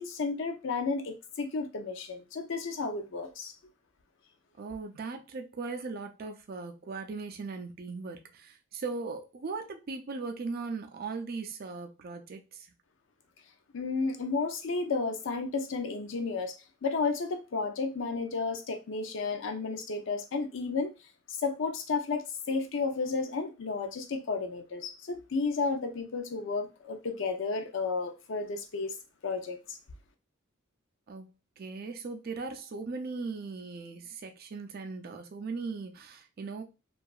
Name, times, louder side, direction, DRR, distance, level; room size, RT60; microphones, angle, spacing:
voice 1, 0.0-3.5 13.7-16.6 16.8-20.9 21.3-29.0 29.2-29.8, left 4 dB, 60° left, 0.5 m, -32 dB
voice 2, 4.6-12.7 31.1-31.3 31.6-36.6, right 4 dB, 45° right, 0.4 m, -38 dB
2.8 x 2.3 x 2.3 m
head